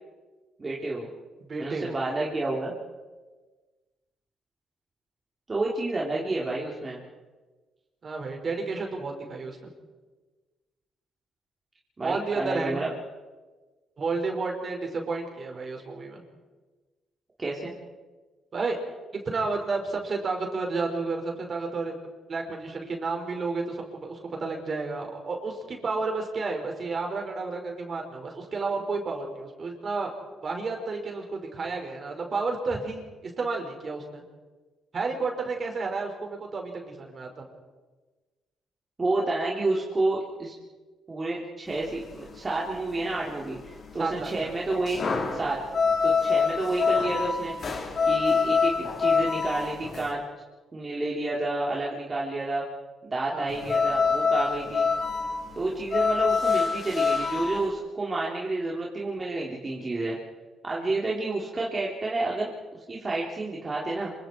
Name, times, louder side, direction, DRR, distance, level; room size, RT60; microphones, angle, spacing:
voice 1, 0.6-1.1 1.6-2.8 5.5-7.0 12.0-12.9 17.4-17.7 39.0-40.5 41.1-45.0 45.3-45.6 46.0-47.5 48.0-50.2 50.7-52.6 53.1-54.9 55.6-60.2 60.6-64.1, right 2 dB, 25° right, -4 dB, 3.6 m, -30 dB
voice 2, 1.4-2.0 8.0-9.7 12.0-12.8 14.0-16.2 18.5-18.8 19.3-21.9 22.3-30.1 30.4-34.2 34.9-37.5 44.0-44.5 53.3-53.5 60.8-60.9, right 3 dB, 45° right, 2 dB, 5.4 m, -31 dB
sound 1, 41.7-50.1 53.5-57.7, left 5 dB, 45° left, 4.2 m, -26 dB
27.0 x 25.0 x 4.6 m, 1.3 s
cardioid pair, 90°, 0 cm